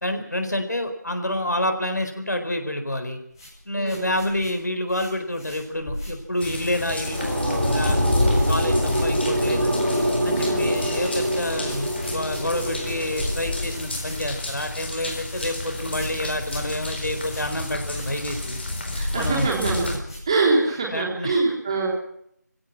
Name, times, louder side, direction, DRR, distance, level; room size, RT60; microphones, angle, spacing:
voice 1, 0.0-3.2 3.6-9.8 10.2-18.6 19.1-19.5 20.9-21.3, left 1 dB, 75° left, 6 dB, 4.5 m, -28 dB
sound 1, 3.3-7.7 7.9-8.5 8.8-20.8, left 1 dB, 15° left, 7.0 m, -39 dB
voice 2, 3.7-4.1 10.3-10.7 18.9-19.9 20.3-21.9, right 3 dB, 15° right, -2 dB, 3.8 m, -24 dB
sound 2, 6.4-20.0, left 2 dB, 35° left, 4.1 m, -29 dB
sound 3, 6.7-13.8, right 1 dB, 85° right, 5.9 m, -26 dB
26.5 x 16.5 x 6.1 m, 0.71 s
figure-of-eight pair, 170°, 10 cm